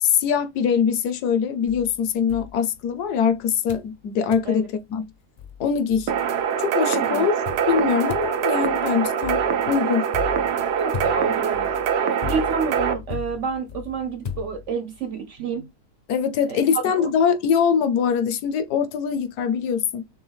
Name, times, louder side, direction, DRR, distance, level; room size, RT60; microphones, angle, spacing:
voice 1, 0.0-5.0 5.6-6.1 6.6-7.3 7.7-10.1 16.1-20.1, left 7 dB, 75° left, 1.2 m, -23 dB
sound 1, 1.7-3.2 3.7-4.0 4.3-4.6 5.1-5.2 5.4-6.5 7.5-15.0, left 7 dB, 55° left, 0.4 m, -37 dB
sound 2, 6.1-12.9, right 8 dB, 85° right, 1.3 m, -24 dB
voice 2, 10.8-15.7 16.5-17.1, right 5 dB, 65° right, 0.8 m, -29 dB
6.2 x 2.2 x 3.4 m
omnidirectional pair, 1.7 m